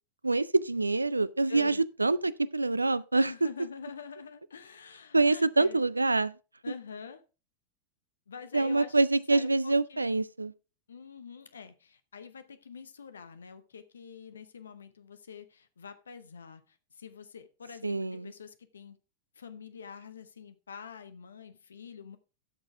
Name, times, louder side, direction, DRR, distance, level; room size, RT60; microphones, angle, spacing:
voice 1, 0.2-3.3 5.1-6.3 8.5-10.5 17.8-18.3, right 3 dB, 80° right, 0.4 m, -26 dB
voice 2, 1.5-1.8 3.1-5.8 6.6-7.2 8.3-9.0 9.3-10.1 10.9-19.0 19.3-22.2, left 6 dB, 70° left, 0.8 m, -46 dB
13.0 x 6.4 x 3.4 m
figure-of-eight pair, 90°, 0 cm